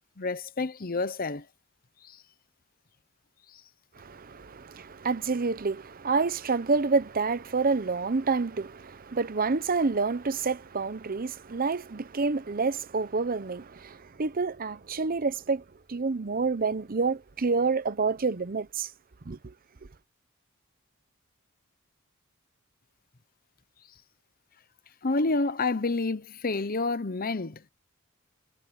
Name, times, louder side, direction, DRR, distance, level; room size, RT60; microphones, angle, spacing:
voice 1, 0.2-1.5 2.0-2.2 3.5-3.6 25.0-27.7, left 3 dB, 45° left, 0.9 m, -29 dB
voice 2, 4.0-15.6 15.9-18.9 19.3-19.5, right 4 dB, 45° right, 0.7 m, -28 dB
head